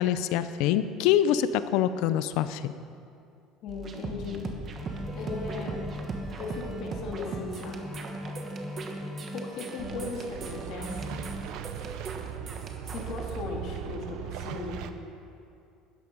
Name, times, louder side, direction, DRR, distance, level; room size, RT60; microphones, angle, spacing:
voice 1, 0.0-2.7, left 10 dB, 75° left, 13 dB, 0.5 m, -25 dB
voice 2, 3.6-4.5 5.2-5.8 6.4-7.8 9.3-11.0 12.8-14.8, left 3 dB, 60° left, 0 dB, 2.1 m, -37 dB
sound 1, 3.7-13.3, right 3 dB, 35° right, 1.4 m, -39 dB
sound 2, 4.7-6.8 7.2-10.0 10.4-11.4, equal, ahead, 3.4 m, -39 dB
sound 3, 9.8-14.9, right 9 dB, 70° right, 0.7 m, -38 dB
12.5 x 9.6 x 5.3 m, 2.5 s
cardioid pair, 120°, 0 cm